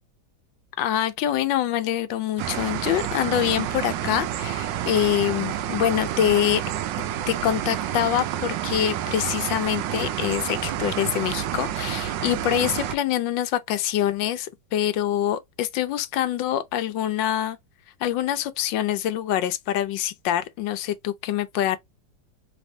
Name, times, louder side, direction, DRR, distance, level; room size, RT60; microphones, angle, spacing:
voice 1, 0.8-6.6 7.3-17.6 18.0-21.8, left 11 dB, 90° left, 1.3 m, -25 dB
sound 1, 2.4-13.0, right 11 dB, 85° right, 1.3 m, -29 dB
3.4 x 3.2 x 2.6 m
omnidirectional pair, 2.0 m